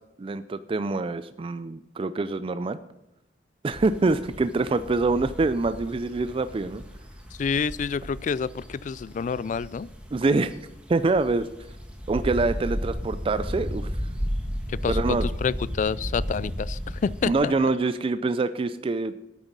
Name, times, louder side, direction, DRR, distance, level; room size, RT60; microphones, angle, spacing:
voice 1, 0.2-2.8 3.6-6.8 10.1-10.5 10.9-11.5 12.1-13.9 14.9-15.3 17.2-19.1, right 3 dB, 30° right, 12 dB, 0.3 m, -25 dB
sound 1, 3.7-17.3, equal, 5° right, 1.7 m, -34 dB
voice 2, 7.4-9.9 14.8-17.5, left 6 dB, 45° left, 20 dB, 0.3 m, -28 dB
9.2 x 8.9 x 6.0 m, 0.95 s
head